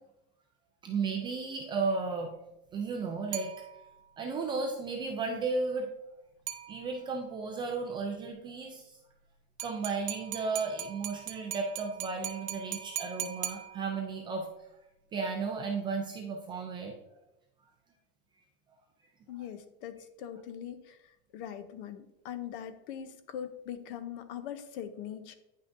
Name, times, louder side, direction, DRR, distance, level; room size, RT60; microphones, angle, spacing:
voice 1, 0.8-2.3 2.7-3.5 4.2-5.9 6.7-9.0 9.6-14.5 15.1-16.9, right 4 dB, 15° right, 2 dB, 0.3 m, -34 dB
sound 1, 3.3-4.2 6.5-7.2 9.6-14.2, right 11 dB, 85° right, 0.9 m, -40 dB
voice 2, 19.3-25.4, left 9 dB, 55° left, 10 dB, 0.7 m, -42 dB
9.5 x 5.7 x 2.6 m, 0.91 s
supercardioid pair, 170°, 32 cm